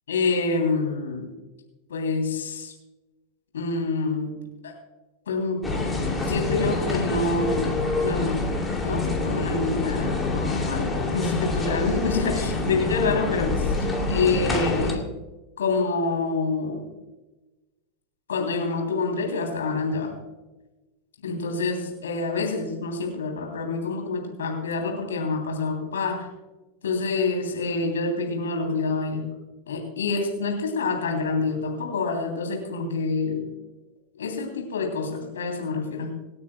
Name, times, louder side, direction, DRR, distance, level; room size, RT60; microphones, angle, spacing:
voice 1, 0.1-1.3 1.9-2.7 3.5-4.3 4.6-4.7 5.3-5.7 6.3-8.4 8.8-13.7 14.1-15.1 15.6-16.9 18.3-20.1 21.2-26.3 26.8-29.2 29.7-33.4 34.2-36.1, left 3 dB, 65° left, 2 dB, 3.1 m, -27 dB
sound 1, 5.6-15.0, left 3 dB, 10° left, 2.5 m, -26 dB
26.5 x 9.5 x 2.2 m, 1.1 s
figure-of-eight pair, 90°, 0 cm